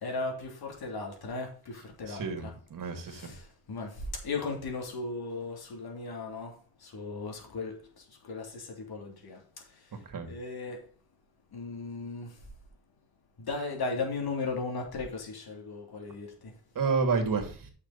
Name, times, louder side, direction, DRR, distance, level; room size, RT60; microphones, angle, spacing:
voice 1, 0.0-2.5 3.0-10.0 10.3-10.9 11.5-12.4 13.4-16.5, left 3 dB, 65° left, 3.1 m, -37 dB
voice 2, 2.1-3.3 10.1-10.3 16.7-17.7, right 4 dB, 55° right, 2.7 m, -30 dB
9.6 x 6.5 x 4.2 m
wide cardioid pair, 125°, 40 cm